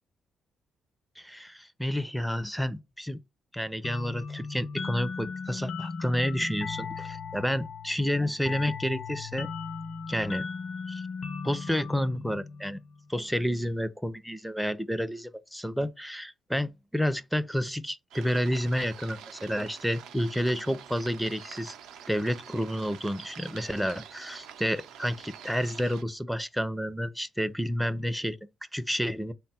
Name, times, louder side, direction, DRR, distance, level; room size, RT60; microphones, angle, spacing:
voice 1, 1.2-3.2 3.5-9.5 10.1-10.5 10.9-11.1 11.4-12.8 13.1-21.7 22.1-28.4 28.7-29.3, equal, ahead, 0.4 m, -30 dB
sound 1, 3.8-13.2, left 5 dB, 50° left, 0.5 m, -37 dB
sound 2, 18.1-26.0, right 9 dB, 85° right, 0.4 m, -47 dB
3.5 x 2.2 x 4.2 m
cardioid pair, 90°, 0 cm